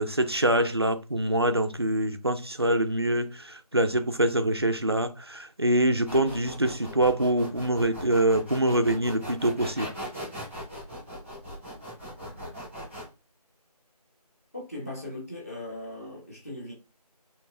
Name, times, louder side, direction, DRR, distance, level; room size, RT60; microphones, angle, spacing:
voice 1, 0.0-9.9, right 1 dB, 40° right, 0.5 m, -25 dB
sound 1, 6.0-13.0, equal, ahead, 1.4 m, -39 dB
voice 2, 14.5-16.7, left 1 dB, 25° left, 1.3 m, -38 dB
6.1 x 3.0 x 2.6 m
figure-of-eight pair, 175°, 20 cm